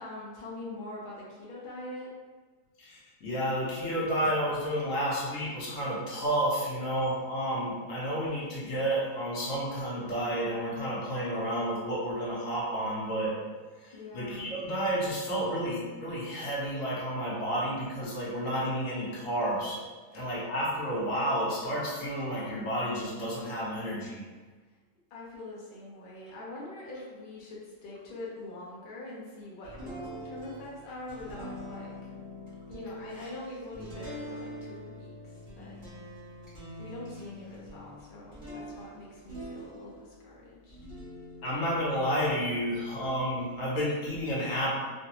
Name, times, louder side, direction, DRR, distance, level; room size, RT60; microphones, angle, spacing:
voice 1, 0.0-2.1 13.9-14.6 20.2-20.4 25.1-31.9 32.7-35.8 36.8-40.8, left 2 dB, 50° left, -5 dB, 0.6 m, -43 dB
voice 2, 2.8-13.4 13.8-19.8 20.1-24.2 41.4-44.7, equal, 65° left, -6 dB, 1.2 m, -31 dB
sound 1, 29.6-40.2 40.7-43.0, equal, 35° right, 1.0 m, -44 dB
3.2 x 2.1 x 2.8 m, 1.4 s
omnidirectional pair, 1.5 m